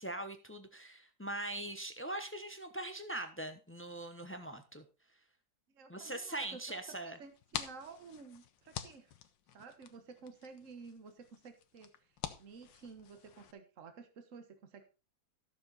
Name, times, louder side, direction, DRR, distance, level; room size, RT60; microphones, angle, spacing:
voice 1, 0.0-4.8 5.9-7.2, right 1 dB, 15° left, 8 dB, 0.4 m, -41 dB
voice 2, 5.7-6.8 7.0-9.1 9.5-12.1 12.4-14.9, right 5 dB, 45° right, 8 dB, 1.6 m, -52 dB
sound 1, 7.2-13.5, left 9 dB, 75° left, 1.6 m, -47 dB
13.0 x 7.1 x 4.1 m, 0.31 s
omnidirectional pair, 2.1 m